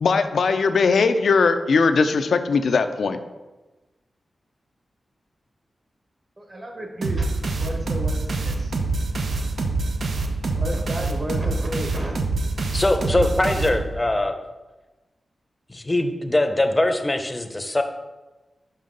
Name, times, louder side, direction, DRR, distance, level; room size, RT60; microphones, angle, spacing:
voice 1, 0.0-3.2, left 4 dB, 80° left, 9 dB, 0.4 m, -19 dB
voice 2, 6.4-7.3 7.6-8.7 10.5-12.2, equal, 40° right, 2 dB, 1.2 m, -32 dB
sound 1, 7.0-14.2, right 3 dB, 80° right, 0.6 m, -26 dB
voice 3, 12.7-14.4 15.7-17.8, left 1 dB, 20° left, 6 dB, 0.6 m, -22 dB
5.4 x 5.1 x 3.8 m, 1.1 s
wide cardioid pair, 90°, 0 cm